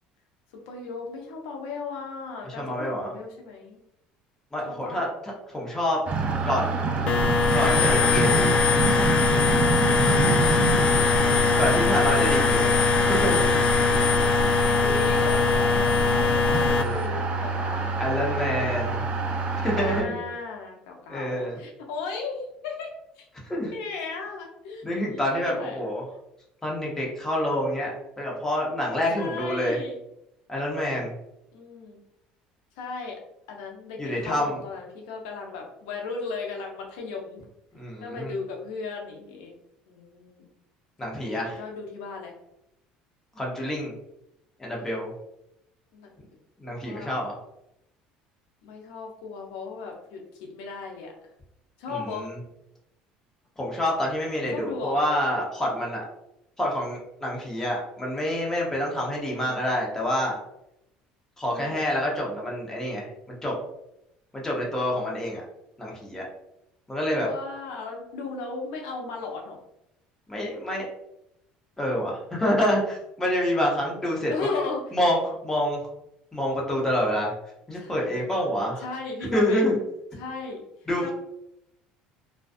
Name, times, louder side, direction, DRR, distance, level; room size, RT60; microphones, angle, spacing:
voice 1, 0.7-3.8 4.6-5.0 10.1-12.6 14.8-18.0 18.5-19.2 19.8-22.9 23.2-23.3 23.7-24.8 25.1-25.8 29.2-30.0 31.5-32.0 32.8-33.2 33.5-37.4 38.0-39.5 39.9-40.5 41.3-42.3 44.7-45.0 45.9-46.1 46.7-47.2 48.6-51.1 51.8-52.3 54.5-55.0 59.3-59.7 61.4-61.9 67.1-69.6 74.3-74.8 77.8-78.3 78.8-79.8 80.2-80.6 81.0-81.1, left 4 dB, 85° left, 1 dB, 0.6 m, -36 dB
voice 2, 2.4-3.1 4.5-5.1 5.5-6.0 6.5-6.8 7.5-8.4 11.6-12.7 13.1-13.4 18.0-19.0 19.6-20.2 21.1-21.6 23.5-23.7 24.8-26.0 26.6-27.9 28.2-29.8 30.5-31.1 34.0-34.6 37.7-38.3 41.0-41.6 43.4-43.9 44.6-45.1 46.6-47.3 51.9-52.3 53.6-56.0 56.6-60.4 61.4-63.1 63.4-63.5 64.3-65.4 65.8-66.3 66.9-67.3 70.3-70.9 71.8-74.3 74.9-75.8 76.3-77.3 77.7-78.8 79.3-79.8 80.9-81.1, equal, 15° left, -3 dB, 0.9 m, -27 dB
sound 1, 6.1-20.0, right 4 dB, 40° right, 0.4 m, -27 dB
sound 2, 7.1-16.8, left 5 dB, 35° left, 0.4 m, -22 dB
2.4 x 2.2 x 2.5 m, 0.83 s
supercardioid pair, 105°, 3 cm